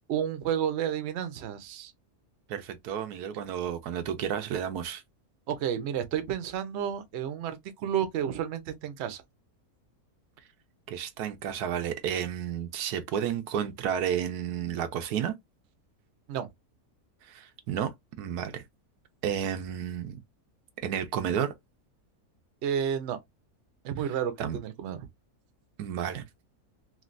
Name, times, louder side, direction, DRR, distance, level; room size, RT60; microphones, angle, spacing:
voice 1, 0.1-1.9 5.5-9.2 16.3-16.5 22.6-23.2 23.8-25.1, right 9 dB, 60° right, 0.8 m, -31 dB
voice 2, 2.5-5.0 10.9-15.3 17.2-18.6 19.2-20.2 20.8-21.5 24.4-24.6 25.8-26.2, right 9 dB, 85° right, 1.2 m, -31 dB
3.2 x 2.6 x 2.5 m
omnidirectional pair, 1.6 m